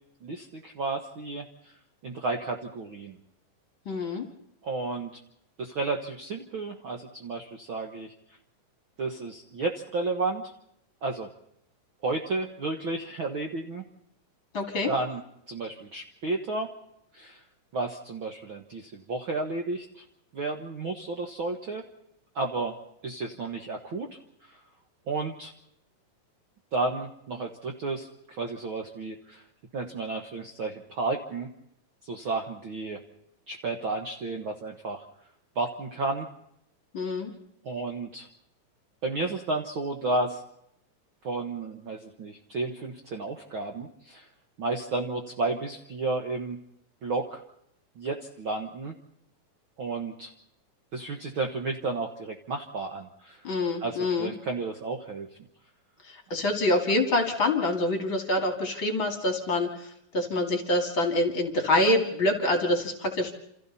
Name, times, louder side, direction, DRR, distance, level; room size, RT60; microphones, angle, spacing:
voice 1, 0.2-1.7 2.0-3.2 4.6-5.1 5.6-8.1 9.0-10.4 11.0-11.3 12.0-13.8 14.9-15.2 15.5-16.7 17.1-17.4 17.7-20.0 20.3-21.8 22.3-22.8 23.0-24.6 25.1-25.5 26.7-29.4 29.7-31.5 32.0-33.0 33.5-35.0 35.5-36.3 37.6-38.3 39.0-40.4 41.2-44.3 44.6-46.6 47.0-47.4 48.0-48.9 49.8-50.3 50.9-53.4 53.8-55.3, right 3 dB, 50° right, 3 dB, 1.6 m, -32 dB
voice 2, 3.9-4.3 14.5-14.9 36.9-37.3 53.4-54.3 56.3-63.3, left 1 dB, 40° left, 4 dB, 3.1 m, -26 dB
28.5 x 28.5 x 4.2 m, 0.76 s
omnidirectional pair, 3.9 m